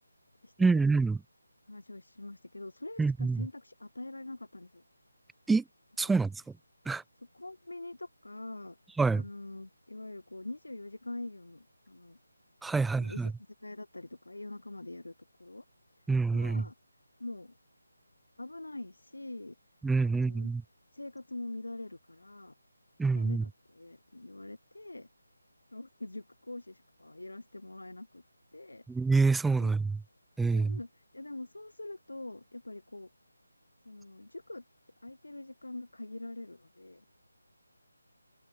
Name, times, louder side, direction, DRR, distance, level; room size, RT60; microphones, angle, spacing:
voice 1, 0.6-1.2 3.0-3.5 5.5-5.6 6.0-6.4 6.9-7.0 9.0-9.2 12.6-13.3 16.1-16.6 19.8-20.6 23.0-23.4 28.9-30.0 30.4-30.8, right 4 dB, 5° right, 0.4 m, -26 dB
voice 2, 1.7-4.8 6.0-6.1 7.3-8.8 9.1-12.2 12.7-13.3 13.6-15.1 15.4-15.6 15.9-16.0 16.3-16.7 17.2-17.6 18.4-19.5 20.0-20.5 20.9-22.5 23.1-25.1 25.7-28.2 28.5-28.8 29.5-29.7 30.4-33.1 33.8-34.6 35.0-37.0, left 2 dB, 80° left, 3.1 m, -44 dB
figure-of-eight pair, 155°, 0 cm